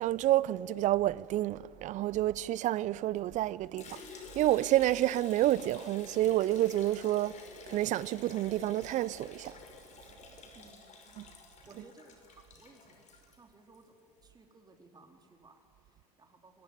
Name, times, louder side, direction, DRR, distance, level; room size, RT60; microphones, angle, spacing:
voice 1, 0.0-4.0 4.3-7.4 7.7-9.5 11.2-11.3 11.7-11.8, right 14 dB, 40° right, 0.6 m, -29 dB
Liquid, 3.8-13.9, left 4 dB, 35° left, 5.7 m, -50 dB
voice 2, 10.5-16.6, right 3 dB, 20° right, 3.9 m, -59 dB
24.5 x 21.5 x 9.6 m
hypercardioid pair, 80°, 20 cm